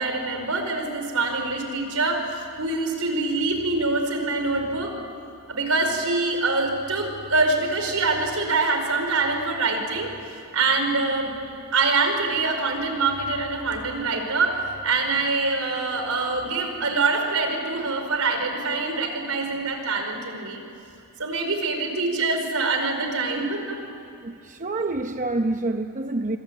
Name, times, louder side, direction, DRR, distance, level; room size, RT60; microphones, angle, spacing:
voice 1, 0.0-4.9 5.5-10.1 10.5-11.3 11.7-20.6 21.2-23.8, right 3 dB, 75° right, 5 dB, 4.9 m, -25 dB
voice 2, 24.2-26.4, right 2 dB, 35° right, 6 dB, 0.8 m, -27 dB
26.0 x 25.5 x 8.8 m, 2.6 s
head